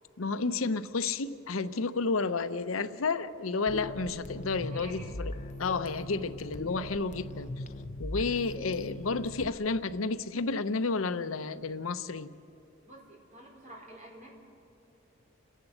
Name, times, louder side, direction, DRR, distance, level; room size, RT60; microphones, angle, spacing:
voice 1, 0.2-5.3 5.6-7.5 8.0-12.3, left 4 dB, 85° left, 12 dB, 0.7 m, -31 dB
sound 1, 3.7-9.5, left 1 dB, 35° left, 0.8 m, -40 dB
voice 2, 4.7-5.3 12.8-14.3, right 1 dB, 40° right, -1 dB, 4.3 m, -49 dB
30.0 x 11.0 x 7.9 m, 3.0 s
head